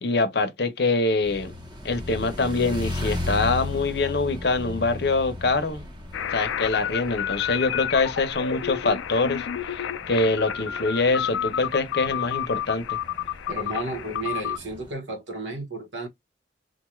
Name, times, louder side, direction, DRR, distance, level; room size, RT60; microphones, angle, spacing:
voice 1, 0.0-1.5 1.8-5.9 6.3-13.0, left 3 dB, 55° left, 0.7 m, -24 dB
sound 1, 1.2-14.9, left 2 dB, 25° right, 0.9 m, -37 dB
sound 2, 6.1-14.6, left 10 dB, 85° left, 0.4 m, -30 dB
voice 2, 13.5-16.1, right 2 dB, 75° right, 1.1 m, -33 dB
3.9 x 2.3 x 3.0 m
head